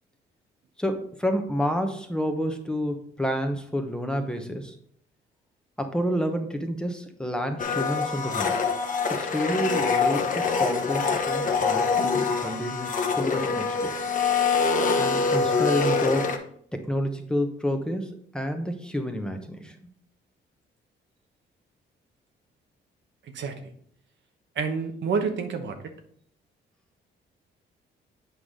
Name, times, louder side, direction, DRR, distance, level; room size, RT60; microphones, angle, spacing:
voice 1, 0.8-4.7 5.8-8.5 9.1-14.1 15.0-16.3 16.7-19.7, equal, 5° left, 5 dB, 1.0 m, -29 dB
Domestic sounds home sounds, 7.6-16.4, left 5 dB, 40° left, 1.0 m, -25 dB
voice 2, 23.2-23.6 24.5-25.8, right 5 dB, 65° right, 6 dB, 1.1 m, -28 dB
8.2 x 4.8 x 3.7 m, 0.63 s
cardioid pair, 90°, 20 cm